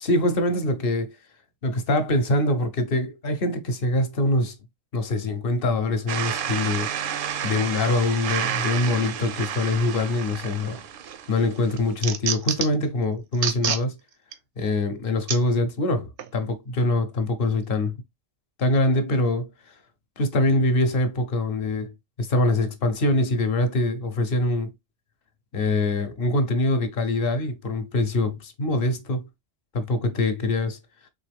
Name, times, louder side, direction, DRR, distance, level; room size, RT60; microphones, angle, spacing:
voice 1, 0.0-1.1 1.6-4.5 4.9-6.9 7.4-10.8 11.3-14.0 14.6-18.0 18.6-19.5 20.2-21.9 22.2-24.7 25.5-29.2 29.7-30.8, left 2 dB, 60° left, 0.9 m, -24 dB
sound 1, 6.1-11.9, right 9 dB, 60° right, 0.6 m, -31 dB
sound 2, 10.7-11.2 11.6-12.8 13.3-13.8 14.3-14.4 15.3-15.4 16.2-16.3, right 8 dB, 85° right, 1.0 m, -27 dB
4.2 x 3.0 x 3.3 m
omnidirectional pair, 1.2 m